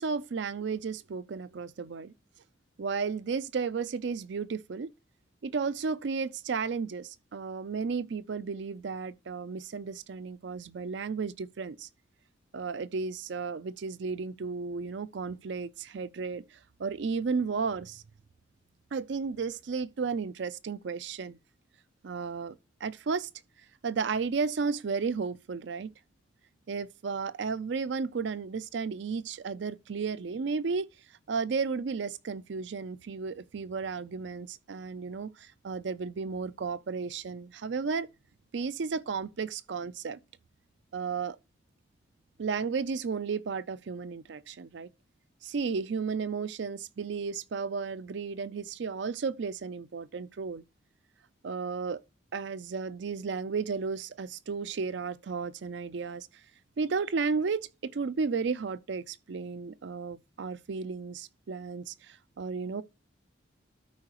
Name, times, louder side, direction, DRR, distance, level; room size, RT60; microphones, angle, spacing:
voice 1, 0.0-2.1 2.8-4.9 5.4-11.9 12.5-18.0 18.9-21.4 22.0-22.6 22.8-23.3 23.8-25.9 26.7-30.9 31.3-38.1 38.5-40.2 40.9-41.4 42.4-44.9 45.4-50.6 51.4-52.0 52.3-56.3 56.8-62.8, right 5 dB, 65° right, 0.4 m, -33 dB
12.5 x 4.8 x 3.0 m
head